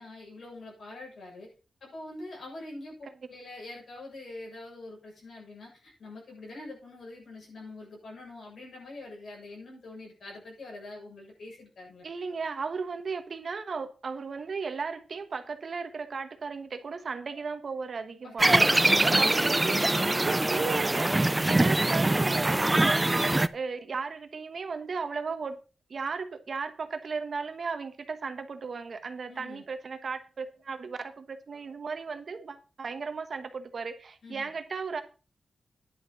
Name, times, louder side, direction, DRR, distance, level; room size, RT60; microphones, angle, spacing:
voice 1, 0.0-1.5 1.8-2.9 3.3-12.0 18.2-20.3 29.3-29.6 34.2-34.5, left 2 dB, 65° left, 7.3 m, -44 dB
voice 2, 12.0-18.5 19.2-19.7 20.0-21.1 21.4-23.1 23.5-25.6 25.9-35.0, right 5 dB, 50° right, 1.2 m, -35 dB
sound 1, 18.4-23.5, right 2 dB, 15° right, 0.4 m, -23 dB
10.5 x 6.5 x 6.1 m
wide cardioid pair, 175°, 0 cm